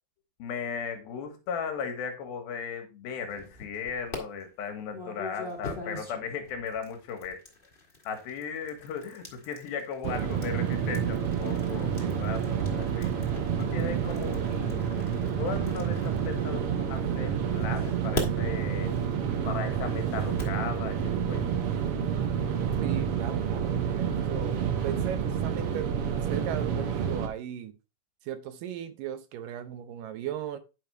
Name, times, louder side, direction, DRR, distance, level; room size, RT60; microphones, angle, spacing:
voice 1, 0.4-7.4 8.0-13.3 13.6-14.8 15.4-18.9 19.4-21.6, left 6 dB, 80° left, 3.3 m, -36 dB
sound 1, 3.3-4.2 4.9-16.9 17.6-20.6, left 2 dB, 30° left, 1.0 m, -42 dB
sound 2, 10.0-27.3, right 8 dB, 90° right, 1.2 m, -29 dB
voice 2, 22.8-26.0 26.2-27.8 28.2-30.6, right 10 dB, 75° right, 2.3 m, -37 dB
10.5 x 5.2 x 3.4 m
omnidirectional pair, 4.3 m